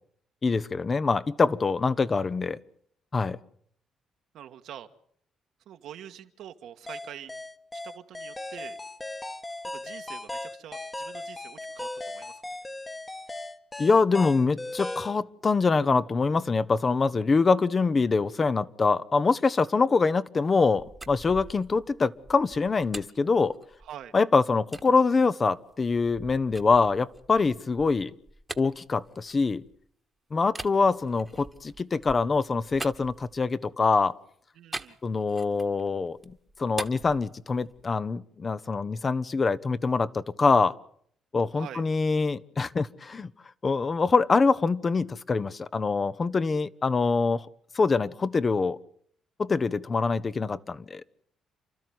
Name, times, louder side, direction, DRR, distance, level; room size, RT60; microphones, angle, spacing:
voice 1, 0.4-2.6 3.1-3.4 13.8-23.6 24.1-28.1 28.6-29.6 30.3-34.2 35.0-40.7 41.3-43.3 43.6-47.5 47.7-48.8 49.4-51.0, left 4 dB, 35° left, 0.9 m, -24 dB
voice 2, 1.9-2.3 4.3-4.9 5.6-7.3 7.7-8.8 9.6-12.3 17.1-17.5 23.8-24.1 34.5-35.0 41.5-41.8, right 10 dB, 80° right, 1.6 m, -45 dB
sound 1, 6.9-15.2, left 2 dB, 15° left, 1.3 m, -37 dB
sound 2, 20.7-24.1 24.7-24.9 25.5-29.9 30.5-33.7 34.7-35.8 36.1-37.9, right 2 dB, 15° right, 1.4 m, -43 dB
29.0 x 12.5 x 9.4 m
cardioid pair, 90°, 0 cm